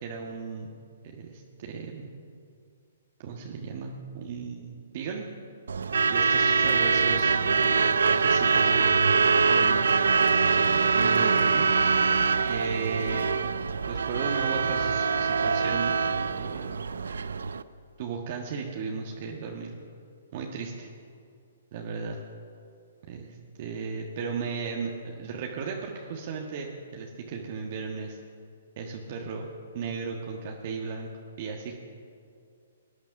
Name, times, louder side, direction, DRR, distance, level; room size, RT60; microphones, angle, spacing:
voice 1, 0.0-0.7 1.0-2.1 3.2-5.3 6.1-9.9 10.6-11.6 12.5-13.3 13.9-16.8 18.0-19.8 20.3-20.9 21.7-22.2 23.1-28.2 28.8-31.1 31.4-31.7, right 5 dB, 45° right, 0 dB, 1.5 m, -35 dB
Truck / Alarm, 5.7-17.6, right 5 dB, 80° right, 0.6 m, -24 dB
19.5 x 10.5 x 5.9 m, 2.5 s
hypercardioid pair, 140°, 0 cm